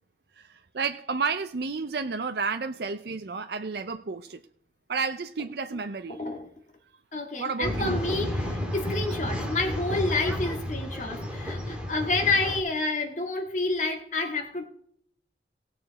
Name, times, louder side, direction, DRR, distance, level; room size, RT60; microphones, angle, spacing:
voice 1, 0.4-4.4 4.9-6.2 7.4-7.9, right 5 dB, 65° right, 0.5 m, -31 dB
voice 2, 6.1-6.5 7.1-14.7, left 3 dB, 40° left, 2.0 m, -29 dB
Male speech man speaking / Chatter / Rattle, 7.6-12.6, left 1 dB, 5° right, 2.0 m, -31 dB
19.0 x 6.8 x 4.1 m
head